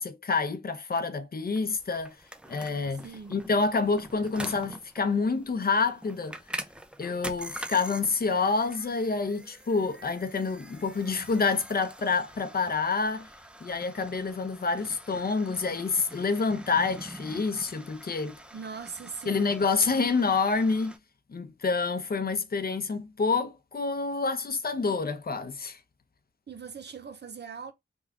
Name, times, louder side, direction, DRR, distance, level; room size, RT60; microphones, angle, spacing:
voice 1, 0.0-2.2 2.5-3.0 3.3-6.4 7.0-13.3 13.6-18.4 19.3-20.9 21.3-25.8, left 4 dB, 50° left, 0.6 m, -28 dB
sound 1, 1.5-21.0, right 1 dB, 5° right, 0.5 m, -45 dB
voice 2, 3.0-3.4 18.5-19.5 26.5-27.7, right 5 dB, 55° right, 0.6 m, -40 dB
3.4 x 2.2 x 3.5 m
cardioid pair, 60°, 20 cm